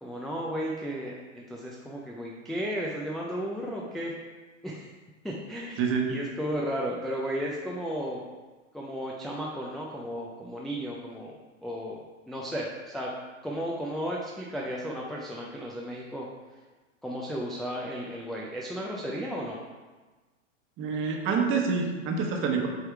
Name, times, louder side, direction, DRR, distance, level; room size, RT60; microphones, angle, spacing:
voice 1, 0.0-4.1 4.6-4.9 5.2-8.2 8.7-11.3 11.6-13.1 13.4-16.3 17.0-19.6, equal, ahead, -4 dB, 0.4 m, -34 dB
voice 2, 5.8-6.1 20.8-22.7, right 5 dB, 35° right, 2 dB, 1.2 m, -27 dB
8.1 x 3.5 x 4.5 m, 1.3 s
hypercardioid pair, 115°, 38 cm